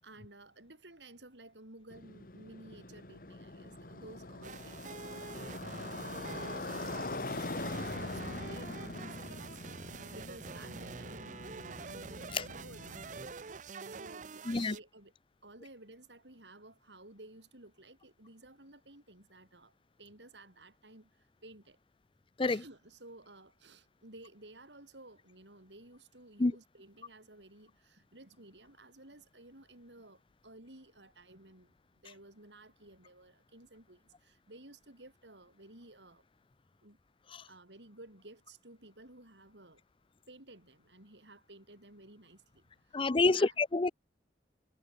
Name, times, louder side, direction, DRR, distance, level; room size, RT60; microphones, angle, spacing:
voice 1, 0.0-9.6 9.9-11.9 12.3-13.4 13.9-15.1 15.4-21.8 22.5-31.8 32.0-36.2 36.8-37.0 37.5-39.8 40.3-43.5, right 2 dB, 90° right, 6.6 m, -55 dB
Motorcycle, 1.9-13.3, left 2 dB, 55° left, 1.6 m, -43 dB
sound 1, 4.4-14.8, right 4 dB, 45° right, 0.7 m, -46 dB
voice 2, 42.9-43.9, left 3 dB, 30° left, 0.5 m, -28 dB
head